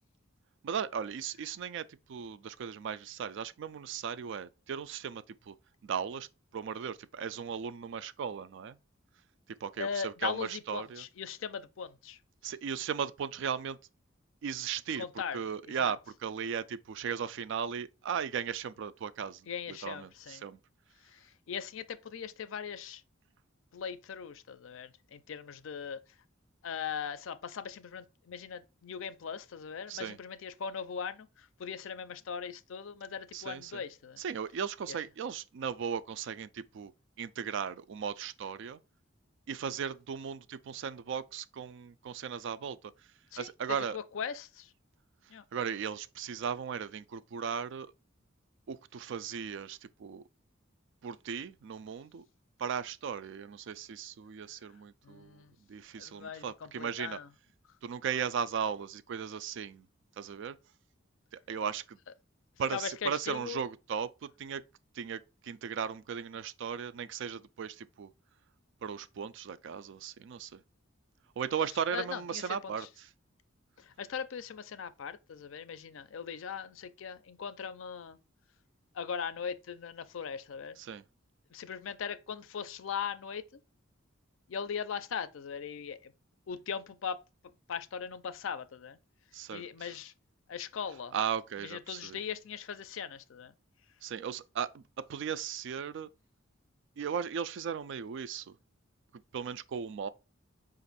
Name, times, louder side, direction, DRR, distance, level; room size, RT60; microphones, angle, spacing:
voice 1, 0.6-5.6 5.8-6.3 6.5-8.8 9.6-11.0 12.4-13.8 14.4-15.1 15.3-20.6 29.9-30.2 33.3-33.7 34.2-36.9 37.2-38.8 39.5-42.9 43.4-44.0 45.5-47.9 48.7-50.2 51.0-52.2 52.6-55.4 55.7-57.2 57.8-59.9 60.2-60.6 61.3-62.0 62.6-64.6 64.9-68.1 68.8-70.6 71.4-72.9 80.8-81.0 89.3-89.7 91.1-92.2 94.0-96.1 97.0-98.6 99.3-100.1, right 7 dB, 65° right, 0.3 m, -37 dB
voice 2, 9.8-12.2 15.0-15.9 19.5-20.5 21.0-23.0 23.7-26.2 26.6-34.2 34.9-35.0 43.3-44.7 45.3-45.4 55.0-55.5 56.0-57.3 62.7-63.6 71.9-72.9 73.8-78.2 78.9-80.8 81.5-83.6 84.5-86.1 86.5-87.2 87.7-89.0 89.5-90.1 90.5-91.1 91.6-93.5, left 7 dB, 70° left, 0.4 m, -39 dB
5.1 x 2.5 x 4.0 m
head